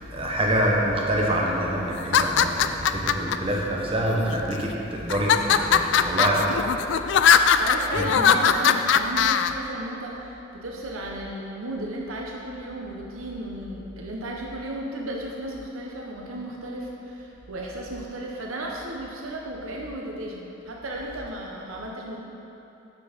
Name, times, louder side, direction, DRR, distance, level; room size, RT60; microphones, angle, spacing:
voice 1, 0.0-6.8 7.9-8.4, right 1 dB, 25° right, -2 dB, 0.9 m, -26 dB
sound 1, 2.0-3.4 4.1-4.6 5.1-9.5, left 7 dB, 60° left, 0.3 m, -20 dB
voice 2, 7.6-22.2, right 1 dB, 85° right, -1 dB, 0.8 m, -34 dB
8.2 x 6.1 x 5.1 m, 3.0 s
head